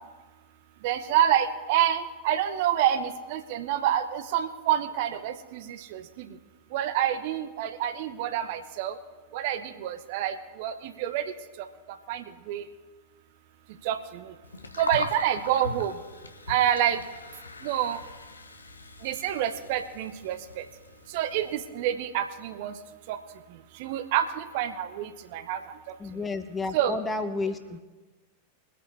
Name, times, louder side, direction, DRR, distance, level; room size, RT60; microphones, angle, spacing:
voice 1, 0.8-6.3 6.7-8.9 9.3-11.2 12.1-12.6 13.8-14.0 14.8-15.9 16.5-17.0 17.6-18.0 19.0-20.4 21.1-22.7 23.1-23.2 23.8-25.6 26.7-26.9, right 10 dB, 50° right, 10 dB, 1.0 m, -27 dB
Gurgling, 14.4-21.6, left 3 dB, 75° left, 1.0 m, -40 dB
voice 2, 26.0-27.8, left 3 dB, 15° left, 9 dB, 1.1 m, -31 dB
23.5 x 8.7 x 3.5 m, 1.3 s
figure-of-eight pair, 90°, 0 cm